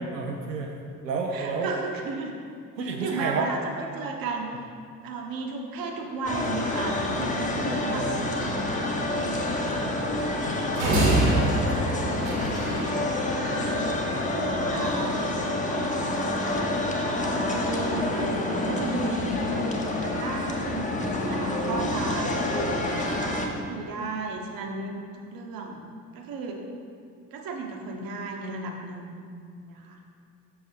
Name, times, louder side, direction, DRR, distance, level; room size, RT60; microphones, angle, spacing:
voice 1, 0.1-1.7 2.8-3.5 11.2-12.0 21.0-21.1, right 4 dB, 80° right, 0 dB, 0.6 m, -31 dB
voice 2, 1.3-2.3 2.8-4.5 5.0-8.2 8.6-9.7 13.4-13.7 14.3-15.2 15.7-15.9 16.4-19.7 20.0-22.3 23.3-25.7 26.1-26.6 27.3-29.1 29.6-30.0, right 3 dB, 45° right, 2 dB, 1.0 m, -34 dB
sound 1, 6.2-23.5, left 2 dB, 15° left, 0.9 m, -28 dB
sound 2, 10.8-13.0, right 1 dB, 65° right, 1.5 m, -24 dB
7.3 x 6.3 x 3.3 m, 2.3 s
figure-of-eight pair, 50°, 49 cm